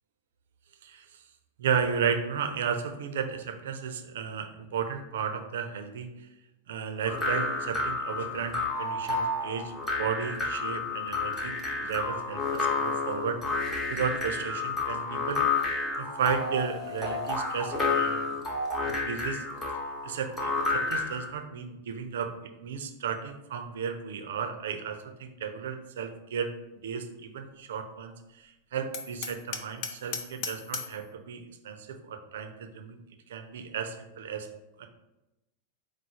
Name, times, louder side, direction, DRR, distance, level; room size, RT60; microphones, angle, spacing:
voice 1, 1.6-6.1 6.7-11.5 11.8-13.4 13.9-15.4 16.0-18.2 18.8-19.4 20.0-26.5 26.8-33.0 33.3-34.5 34.8-34.9, right 7 dB, 60° right, 6 dB, 0.4 m, -34 dB
sound 1, 7.1-21.3, left 3 dB, 20° left, 0.8 m, -30 dB
Hammer, 28.9-31.0, left 6 dB, 45° left, 0.4 m, -37 dB
4.8 x 2.0 x 4.2 m, 0.97 s
figure-of-eight pair, 90°, 0 cm